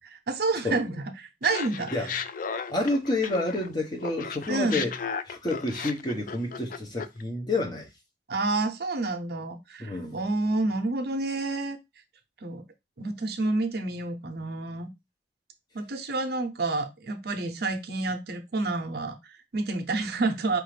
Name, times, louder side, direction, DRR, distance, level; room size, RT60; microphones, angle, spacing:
voice 1, 0.3-1.9 4.5-4.9 8.3-11.8 12.4-12.6 13.0-14.9 15.7-20.6, right 3 dB, 60° right, 0.7 m, -29 dB
Laughter, 1.4-3.7 4.0-7.2, left 6 dB, 50° left, 0.4 m, -35 dB
voice 2, 2.7-4.9 5.3-7.9 9.8-10.2, left 2 dB, 25° left, 0.9 m, -29 dB
4.7 x 2.5 x 3.2 m
head